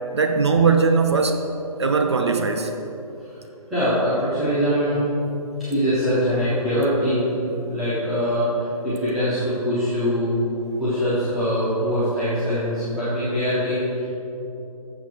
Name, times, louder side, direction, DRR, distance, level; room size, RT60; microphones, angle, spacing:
voice 1, 0.0-1.4 1.8-2.7, right 4 dB, 45° right, 6 dB, 0.6 m, -19 dB
voice 2, 3.7-5.0 5.6-10.4 10.8-14.1, equal, ahead, -16 dB, 0.3 m, -23 dB
12.0 x 6.9 x 4.4 m, 3.0 s
figure-of-eight pair, 145°, 19 cm